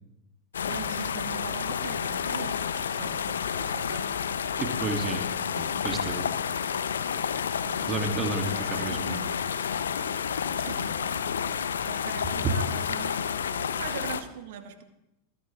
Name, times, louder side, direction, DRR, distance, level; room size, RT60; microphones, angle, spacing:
sound 1, 0.5-14.2, left 7 dB, 70° left, 1.0 m, -30 dB
voice 1, 0.6-4.1 7.6-7.8 8.4-9.3 10.5-14.8, right 8 dB, 60° right, 7 dB, 2.1 m, -42 dB
voice 2, 4.6-5.2 5.5-6.3 7.9-9.2, right 3 dB, 25° right, 3 dB, 3.0 m, -31 dB
22.0 x 17.0 x 3.8 m, 0.89 s
figure-of-eight pair, 85°, 0 cm